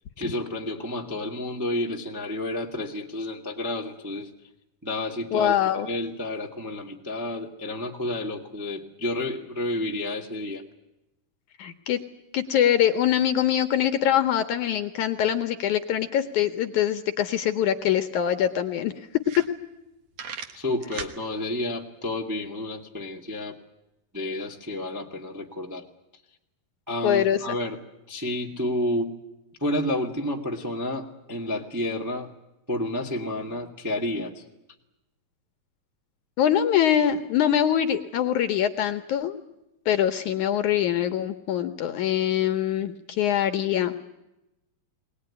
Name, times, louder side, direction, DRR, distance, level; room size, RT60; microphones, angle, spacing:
voice 1, 0.2-4.3 4.8-10.6 20.5-23.6 24.1-25.8 26.9-27.8 28.1-29.2 29.6-32.3 32.7-34.4, left 1 dB, 10° right, 1 dB, 0.8 m, -30 dB
voice 2, 5.3-5.9 11.6-12.0 12.3-18.9 27.0-27.4 36.4-39.4 39.9-43.9, left 10 dB, 70° left, 9 dB, 2.0 m, -23 dB
sound 1, 17.8-17.9 18.2-18.3 18.8-18.9 19.2-19.9 20.1-21.2, right 6 dB, 55° right, 2.0 m, -37 dB
21.5 x 19.0 x 9.8 m, 0.92 s
omnidirectional pair, 4.2 m